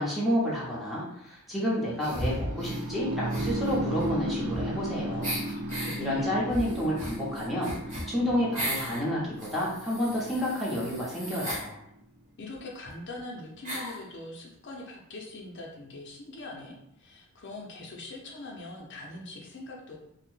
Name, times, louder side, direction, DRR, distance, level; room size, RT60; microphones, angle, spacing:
voice 1, 0.0-5.4 6.0-11.8, equal, ahead, -7 dB, 0.6 m, -30 dB
sound 1, 2.0-2.8 3.3-4.9 5.2-6.0 6.5-9.0 9.4-11.7 12.6-12.7 12.9-13.0 13.6-14.0, equal, 35° right, 1.0 m, -36 dB
sound 2, 2.0-12.0, right 1 dB, 60° right, 0.4 m, -36 dB
voice 2, 5.4-6.4 12.4-20.0, left 2 dB, 50° left, -1 dB, 0.5 m, -42 dB
2.7 x 2.1 x 3.1 m, 0.77 s
head